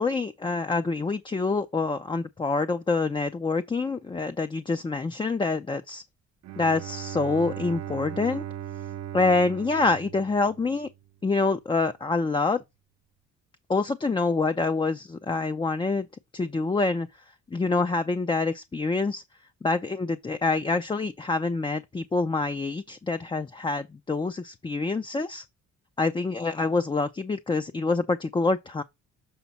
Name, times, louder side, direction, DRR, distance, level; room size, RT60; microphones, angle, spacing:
voice 1, 0.0-6.0 6.6-8.4 9.1-10.9 11.2-12.6 13.7-16.1 16.3-17.1 17.5-19.2 19.6-25.4 26.0-28.8, left 3 dB, 15° left, 0.4 m, -26 dB
Bowed string instrument, 6.4-11.1, right 11 dB, 60° right, 0.6 m, -38 dB
7.1 x 4.1 x 4.1 m
cardioid pair, 90°, 30 cm